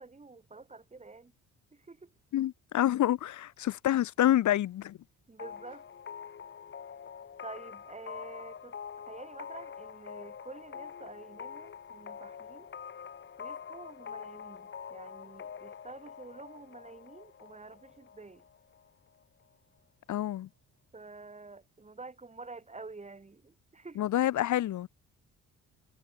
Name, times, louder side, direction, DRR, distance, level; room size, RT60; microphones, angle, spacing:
voice 1, 0.0-1.3 1.7-2.1 5.3-5.8 7.4-8.8 9.1-12.7 13.4-18.4 20.9-24.0, right 3 dB, 25° right, 3.4 m, -48 dB
voice 2, 2.3-5.0 20.1-20.5 24.0-24.9, left 13 dB, 70° left, 1.8 m, -27 dB
sound 1, 5.4-18.9, left 7 dB, 40° left, 1.3 m, -45 dB
cardioid pair, 90°, 30 cm